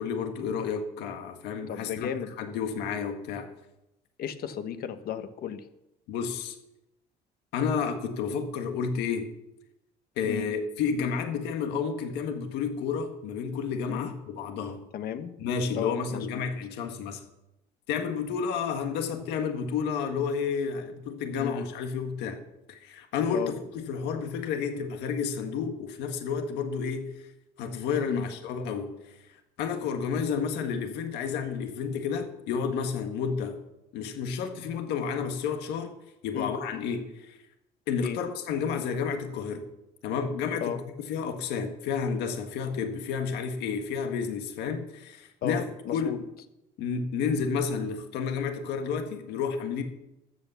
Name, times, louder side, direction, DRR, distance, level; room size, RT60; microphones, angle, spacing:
voice 1, 0.0-2.1 2.4-3.5 6.1-6.5 7.5-9.3 10.2-14.8 15.4-17.2 17.9-22.4 22.7-27.1 27.6-29.1 29.6-33.6 33.9-35.9 36.2-37.4 37.9-39.6 40.0-40.8 41.1-45.6 45.9-46.1 46.8-49.8, left 6 dB, 90° left, 6 dB, 1.6 m, -31 dB
voice 2, 1.7-2.3 4.2-5.6 10.2-10.4 13.9-14.1 14.9-15.3 15.7-16.4 21.4-21.6 23.3-23.5 28.1-28.3 36.3-36.5 38.0-38.2 40.6-40.8 45.4-46.2, left 9 dB, 65° left, 10 dB, 1.2 m, -34 dB
13.5 x 8.4 x 6.9 m, 0.91 s
cardioid pair, 110°, 17 cm